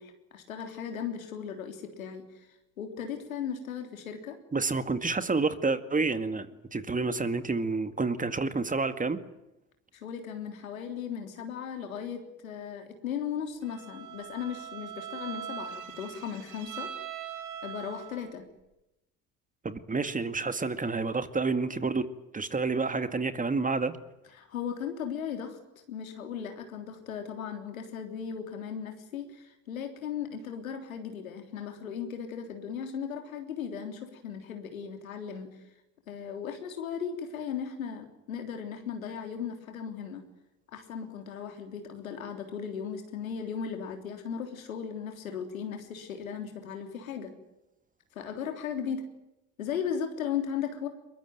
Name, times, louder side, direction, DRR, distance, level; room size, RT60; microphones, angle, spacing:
voice 1, 0.0-2.2 2.8-4.4 10.0-16.9 17.6-18.5 24.4-25.6 25.9-35.5 36.1-40.2 40.7-47.3 48.2-49.1 49.6-50.9, left 7 dB, 90° left, 3.5 m, -37 dB
voice 2, 4.5-6.5 6.7-9.2 19.6-22.1 22.3-23.9, right 4 dB, 20° right, 2.0 m, -29 dB
Bowed string instrument, 13.6-18.3, right 8 dB, 50° right, 2.5 m, -41 dB
22.5 x 22.5 x 9.2 m
hypercardioid pair, 70°, 40 cm